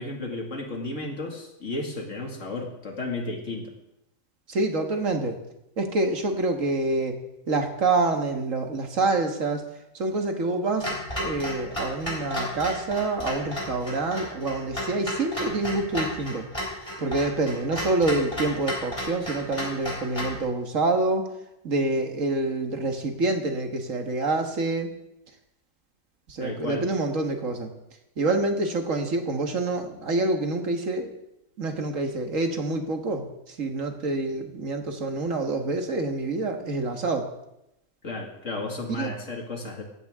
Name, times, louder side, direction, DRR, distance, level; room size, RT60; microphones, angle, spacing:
voice 1, 0.0-3.7 26.4-26.9 38.0-39.8, left 2 dB, 65° left, 2 dB, 2.6 m, -33 dB
voice 2, 4.5-5.4 5.8-7.2 7.5-9.6 9.9-10.9 11.2-16.5 17.0-21.3 21.6-24.9 26.3-27.7 28.2-31.1 31.6-37.3 39.0-39.1, right 2 dB, 70° right, 4 dB, 2.0 m, -27 dB
Clock, 10.8-20.4, left 1 dB, 25° left, 4.3 m, -33 dB
16.5 x 15.0 x 3.7 m, 0.83 s
omnidirectional pair, 1.4 m